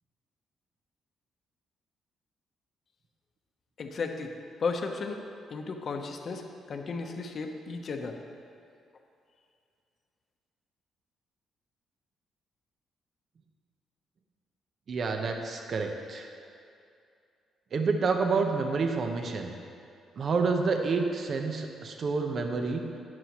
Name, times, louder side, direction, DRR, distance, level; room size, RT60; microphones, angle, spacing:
voice 1, 3.8-4.3 4.6-5.2 5.5-6.4 6.7-8.1, left 4 dB, 50° left, 4 dB, 1.0 m, -34 dB
voice 2, 14.9-16.3 17.7-19.5 20.2-22.8, right 4 dB, 50° right, 4 dB, 1.0 m, -28 dB
12.5 x 9.8 x 3.1 m, 2.4 s
cardioid pair, 90°, 0 cm